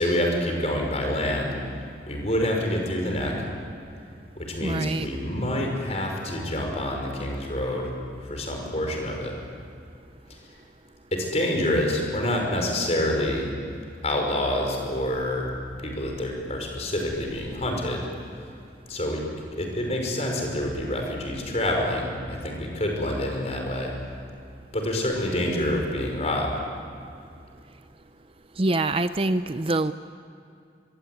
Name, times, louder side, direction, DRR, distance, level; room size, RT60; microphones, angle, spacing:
voice 1, 0.0-1.6 2.1-3.4 4.4-7.9 8.2-9.3 10.3-10.4 11.1-13.5 14.0-15.5 15.8-18.1 18.9-19.2 19.6-23.9 24.7-26.6, left 1 dB, 35° left, 1 dB, 5.5 m, -27 dB
voice 2, 4.6-5.1 28.6-29.9, right 2 dB, 30° right, 11 dB, 0.6 m, -25 dB
24.0 x 23.5 x 9.5 m, 2.4 s
head